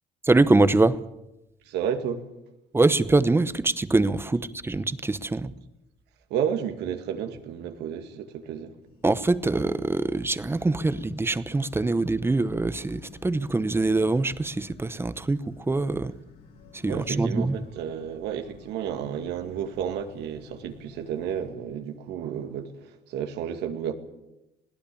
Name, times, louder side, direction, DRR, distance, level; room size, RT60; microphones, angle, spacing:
voice 1, 0.2-1.0 2.7-5.5 9.0-16.1 16.8-17.6, right 2 dB, 15° right, 0.9 m, -24 dB
voice 2, 1.7-2.2 6.3-8.7 16.9-23.9, right 8 dB, 85° right, 2.3 m, -32 dB
sound 1, 8.8-21.5, left 4 dB, 70° left, 4.1 m, -52 dB
21.0 x 17.0 x 8.6 m
cardioid pair, 110°, 17 cm